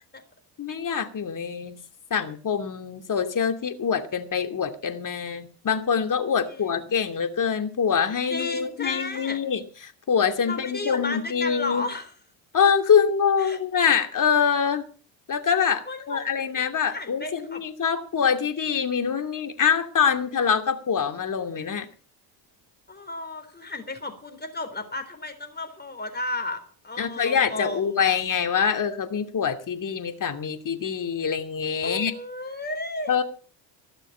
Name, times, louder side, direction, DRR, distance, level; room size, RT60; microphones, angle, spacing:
voice 1, 0.6-1.8 2.1-11.9 12.5-14.8 15.3-21.9 27.0-32.1 33.1-33.2, left 7 dB, 40° left, 6 dB, 2.7 m, -25 dB
voice 2, 6.3-7.0 8.3-9.4 10.4-12.1 13.4-13.6 15.9-16.3 16.9-17.6 22.9-27.9 31.8-33.1, left 2 dB, 20° left, 7 dB, 3.8 m, -34 dB
17.5 x 6.7 x 8.7 m, 0.41 s
supercardioid pair, 80°, 48 cm